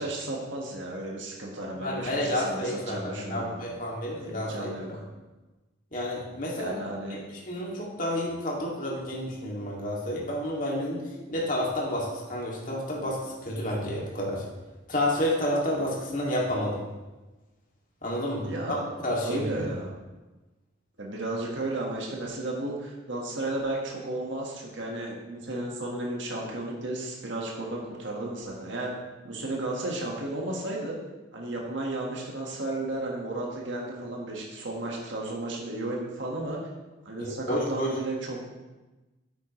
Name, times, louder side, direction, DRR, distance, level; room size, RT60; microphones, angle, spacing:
voice 1, 0.0-3.5 4.2-5.0 6.6-7.2 18.4-18.8 19.2-19.9 21.0-28.9 29.2-30.9 31.3-36.6 37.0-38.5, right 2 dB, 70° right, -2 dB, 1.6 m, -33 dB
voice 2, 1.8-4.7 5.9-6.7 7.1-7.2 7.4-14.4 14.9-16.8 18.0-18.8 19.0-19.4 37.2-37.9, left 1 dB, 45° left, -3 dB, 2.3 m, -30 dB
9.0 x 8.9 x 3.1 m, 1.1 s
head